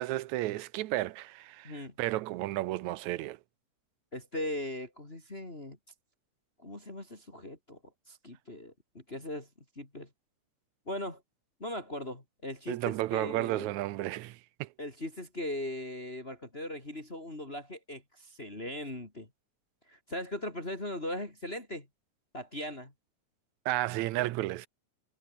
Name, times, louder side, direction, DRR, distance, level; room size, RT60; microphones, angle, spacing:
voice 1, 0.0-3.4 12.7-14.7 23.7-24.7, right 17 dB, 80° right, 2.1 m, -33 dB
voice 2, 4.1-5.8 6.6-7.8 8.1-9.5 9.8-10.1 10.9-11.2 11.6-13.7 14.8-19.3 19.9-21.9 22.3-22.9, left 1 dB, 20° left, 3.8 m, -39 dB
omnidirectional pair, 3.4 m